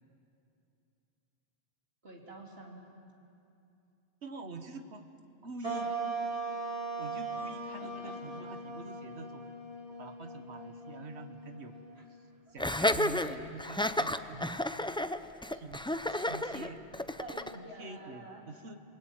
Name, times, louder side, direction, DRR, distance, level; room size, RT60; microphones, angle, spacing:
voice 1, 2.0-2.9 7.8-8.2 12.0-12.1 17.2-18.4, right 2 dB, 65° right, -1 dB, 3.7 m, -48 dB
voice 2, 4.2-5.1 5.4-5.9 7.0-11.8 12.5-14.6 15.5-15.8 16.1-16.8 17.5-18.8, right 3 dB, 85° right, 7 dB, 1.8 m, -46 dB
sound 1, 5.6-12.3, right 3 dB, 35° right, 3.2 m, -39 dB
Laughter, 12.6-17.6, left 1 dB, 5° left, 0.4 m, -31 dB
28.0 x 20.0 x 9.2 m, 2.7 s
omnidirectional pair, 1.1 m